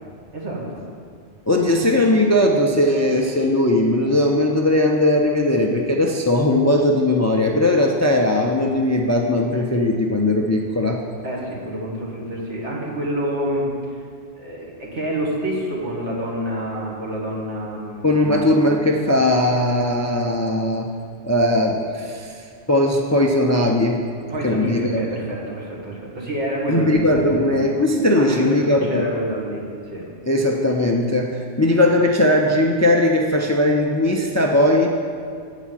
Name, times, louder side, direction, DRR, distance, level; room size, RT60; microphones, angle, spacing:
voice 1, 0.3-0.9 1.6-2.2 11.2-13.6 13.9-14.0 14.3-18.9 24.3-27.6 28.2-30.0, right 1 dB, 85° right, -3 dB, 2.0 m, -28 dB
voice 2, 1.5-11.0 18.0-20.9 21.2-22.4 22.7-24.0 24.4-25.0 26.7-29.1 30.3-34.9, left 1 dB, 25° left, 1 dB, 0.3 m, -19 dB
8.2 x 4.9 x 7.4 m, 2.2 s
omnidirectional pair, 1.1 m